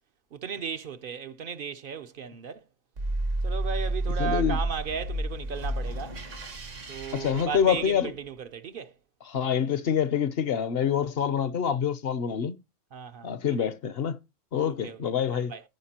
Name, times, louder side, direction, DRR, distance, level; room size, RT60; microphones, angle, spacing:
voice 1, 0.3-2.6 3.4-6.2 6.9-8.9 12.9-13.7 14.5-15.0 15.3-15.6, right 6 dB, 55° right, 0.7 m, -36 dB
sound 1, 3.0-8.3, right 2 dB, 85° right, 1.9 m, -31 dB
voice 2, 4.2-4.6 7.1-8.1 9.2-12.6 13.2-14.2 14.5-15.5, left 8 dB, 60° left, 0.8 m, -26 dB
14.5 x 4.8 x 2.8 m
omnidirectional pair, 1.3 m